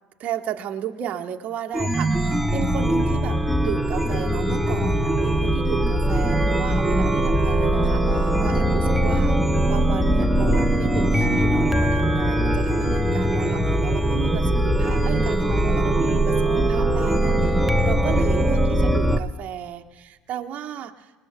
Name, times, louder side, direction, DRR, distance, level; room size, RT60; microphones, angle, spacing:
voice 1, 0.2-21.1, right 9 dB, 40° right, 4 dB, 1.2 m, -34 dB
Chime, 1.7-19.2, right 1 dB, 5° right, 0.9 m, -21 dB
29.0 x 19.0 x 2.3 m, 1.3 s
figure-of-eight pair, 60°, 4 cm